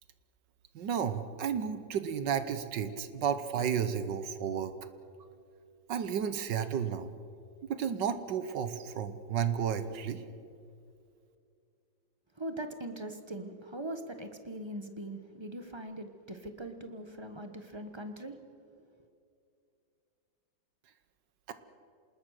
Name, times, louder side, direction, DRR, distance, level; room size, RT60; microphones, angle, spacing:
voice 1, 0.7-4.7 5.9-7.1 7.7-10.2 21.5-21.6, right 8 dB, 70° right, 11 dB, 1.6 m, -32 dB
voice 2, 12.4-18.4, right 1 dB, 15° right, 7 dB, 1.1 m, -41 dB
27.0 x 20.0 x 6.6 m, 2.5 s
omnidirectional pair, 2.1 m